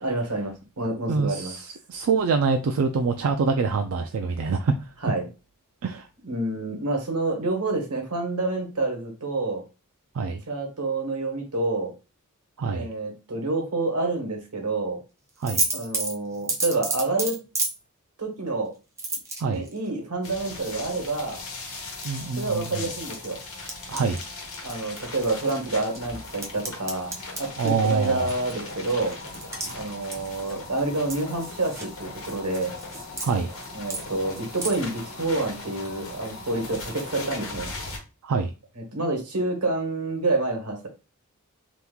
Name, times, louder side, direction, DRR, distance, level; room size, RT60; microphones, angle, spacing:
voice 1, 0.0-1.5 5.0-5.3 6.2-9.6 10.5-11.9 12.7-15.0 15.7-17.4 18.2-18.7 19.5-21.4 22.3-23.4 24.6-29.1 29.7-32.7 33.7-37.7 38.8-40.9, right 2 dB, 90° right, 1.2 m, -28 dB
voice 2, 1.1-4.7 5.8-6.1 10.1-10.4 12.6-12.9 15.4-15.6 19.4-19.6 22.0-22.9 23.9-24.2 27.6-28.3 33.2-33.5 38.2-38.5, right 4 dB, 65° right, 0.4 m, -25 dB
sound 1, 15.4-17.8 19.0-19.8 21.6-22.1 22.5-22.6 23.7-24.3 24.7-25.6 25.9-30.7 31.1-31.9 32.2-33.3 33.6-34.1 34.3-34.8, right 3 dB, 15° right, 0.6 m, -31 dB
sound 2, 20.2-38.0, left 3 dB, 65° left, 1.2 m, -39 dB
2.9 x 2.4 x 3.5 m
head